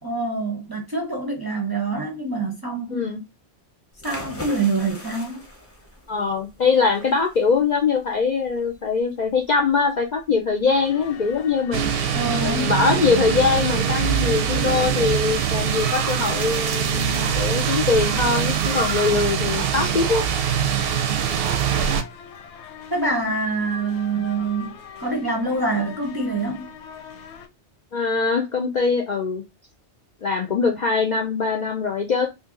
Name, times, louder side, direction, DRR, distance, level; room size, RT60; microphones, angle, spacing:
voice 1, 0.0-3.0 4.0-5.4 12.1-12.7 22.9-24.7 25.0-26.7, right 3 dB, 25° right, 0.5 m, -25 dB
voice 2, 2.9-3.2 6.1-11.9 12.4-20.2 27.9-29.4 30.2-32.3, left 5 dB, 55° left, 0.5 m, -22 dB
sound 1, 3.9-13.2, left 1 dB, 15° left, 0.6 m, -43 dB
sound 2, 10.7-27.5, left 7 dB, 80° left, 0.9 m, -42 dB
sound 3, 11.7-22.0, right 8 dB, 65° right, 0.7 m, -23 dB
2.7 x 2.5 x 3.7 m
omnidirectional pair, 1.2 m